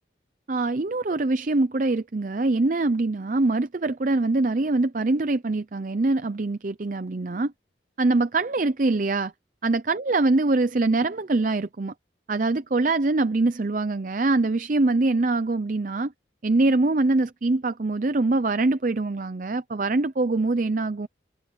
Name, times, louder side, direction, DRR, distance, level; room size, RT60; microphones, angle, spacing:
voice 1, 0.5-7.5 8.0-9.3 9.6-11.9 12.3-16.1 16.4-21.1, right 2 dB, 45° right, 0.6 m, -23 dB
head